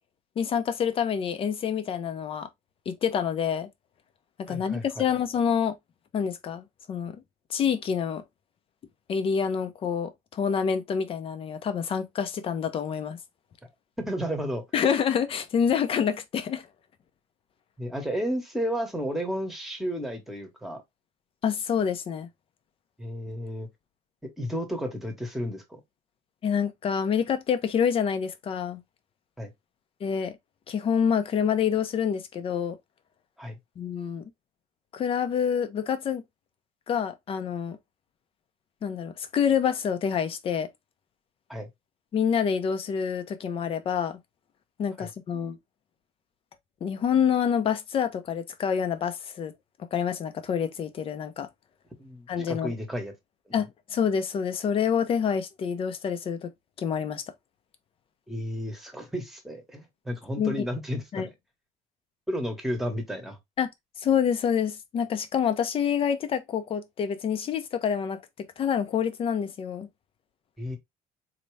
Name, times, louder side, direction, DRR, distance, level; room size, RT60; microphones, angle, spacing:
voice 1, 0.4-2.5 2.9-3.7 4.4-5.8 6.1-7.2 7.5-8.2 9.1-13.2 14.7-16.7 21.4-22.3 26.4-28.8 30.0-30.4 30.7-32.8 33.8-34.2 34.9-36.2 36.9-37.8 38.8-40.7 42.1-44.2 44.8-45.6 46.8-49.5 49.8-51.5 52.3-52.7 53.5-56.5 56.8-57.2 60.4-60.6 61.1-61.3 63.6-63.7 64.0-68.2 68.6-69.9, left 7 dB, 35° left, 0.7 m, -27 dB
voice 2, 4.5-5.0 14.0-14.6 17.8-20.8 23.0-23.7 24.2-25.8 29.4-29.5 33.4-33.6 41.5-41.7 45.0-45.1 52.0-53.1 53.5-53.6 58.3-61.3 62.3-63.4 70.6-70.8, equal, ahead, 1.2 m, -32 dB
4.1 x 2.9 x 3.3 m
cardioid pair, 145°, 15 cm